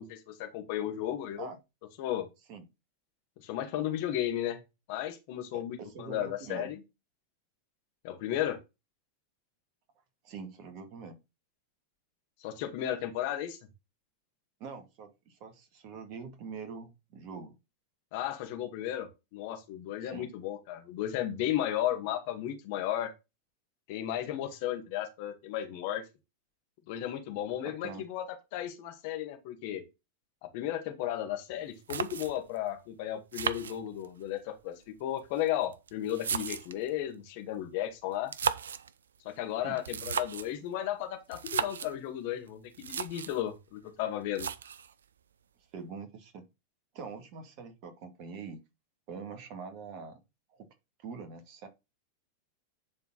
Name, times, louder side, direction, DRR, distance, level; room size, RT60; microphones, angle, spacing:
voice 1, 0.0-1.5 2.0-2.3 3.4-4.6 4.9-6.8 8.0-8.6 12.4-13.6 18.1-23.1 23.9-26.0 26.9-28.3 28.5-29.8 30.4-38.3 39.2-44.5, left 12 dB, 50° left, 1.9 m, -34 dB
voice 2, 5.5-6.7 10.2-11.2 14.6-17.5 20.0-20.3 27.6-28.0 39.6-39.8 45.7-46.4 46.9-48.6 49.1-50.2 50.5-50.7 51.0-51.7, right 5 dB, 45° right, 2.3 m, -44 dB
sound 1, 31.5-31.6 31.9-32.6 33.3-34.3 35.2-36.9 38.1-38.9 39.8-40.6 41.3-41.9 42.5-42.6 42.7-43.4 44.3-44.9, right 7 dB, 65° right, 0.5 m, -35 dB
10.0 x 4.5 x 4.2 m
figure-of-eight pair, 90°, 0 cm